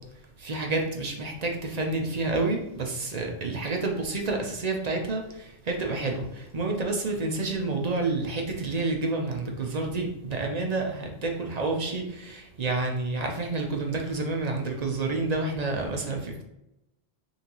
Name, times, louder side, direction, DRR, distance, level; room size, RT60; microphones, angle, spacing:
voice 1, 0.4-16.4, right 3 dB, 45° right, 2 dB, 0.7 m, -29 dB
5.4 x 2.8 x 3.0 m, 0.88 s
omnidirectional pair, 1.1 m